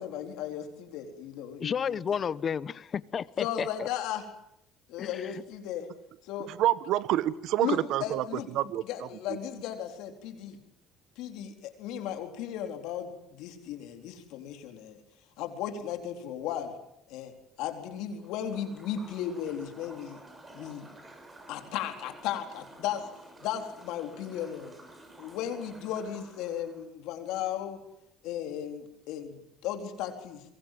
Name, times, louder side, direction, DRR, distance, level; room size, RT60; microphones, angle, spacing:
voice 1, 0.0-2.0 3.4-4.3 4.9-5.9 6.2-6.5 7.6-8.5 8.8-10.6 11.2-15.0 15.4-16.8 17.1-20.2 20.5-20.9 21.5-23.1 23.4-24.8 25.2-27.8 28.2-30.4, left 10 dB, 80° left, 5 dB, 4.1 m, -36 dB
voice 2, 1.6-3.9 5.0-5.4, left 7 dB, 45° left, 19 dB, 1.0 m, -32 dB
voice 3, 6.5-8.2 8.5-9.1, right 13 dB, 75° right, 17 dB, 1.1 m, -27 dB
sound 1, 18.2-26.8, right 1 dB, 25° right, 7.6 m, -51 dB
27.5 x 23.5 x 7.7 m, 0.79 s
supercardioid pair, 85°, 0 cm